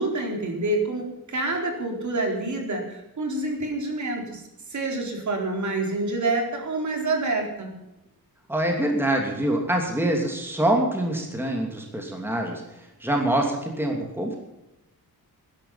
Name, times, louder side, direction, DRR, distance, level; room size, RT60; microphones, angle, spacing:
voice 1, 0.0-4.4 4.7-7.7, right 2 dB, 50° right, 2 dB, 4.2 m, -27 dB
voice 2, 8.5-14.4, right 1 dB, 5° right, 1 dB, 2.8 m, -25 dB
19.5 x 11.5 x 5.8 m, 0.92 s
wide cardioid pair, 145°, 37 cm